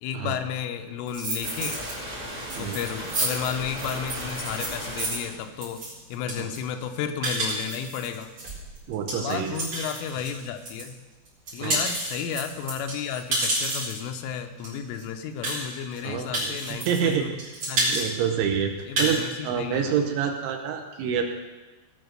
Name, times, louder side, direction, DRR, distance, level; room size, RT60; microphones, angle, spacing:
voice 1, 0.0-1.8 2.6-5.8 6.1-8.3 9.1-11.0 11.5-17.4 17.7-18.0 18.8-20.0, left 8 dB, 80° left, 6 dB, 3.3 m, -33 dB
sound 1, 1.1-1.9 2.3-10.9 11.3-14.1 14.6-14.7 14.9-15.0 15.4-16.0 16.3-17.1 17.4-18.1 18.4-18.5 18.8-19.2, right 1 dB, 35° right, 5.3 m, -30 dB
sound 2, 1.4-5.4, equal, 15° right, 1.5 m, -36 dB
voice 2, 8.9-9.6 11.6-11.8 16.0-17.3 17.9-21.2, right 7 dB, 75° right, 4 dB, 3.0 m, -27 dB
19.0 x 6.3 x 6.4 m, 1.2 s
omnidirectional pair, 5.9 m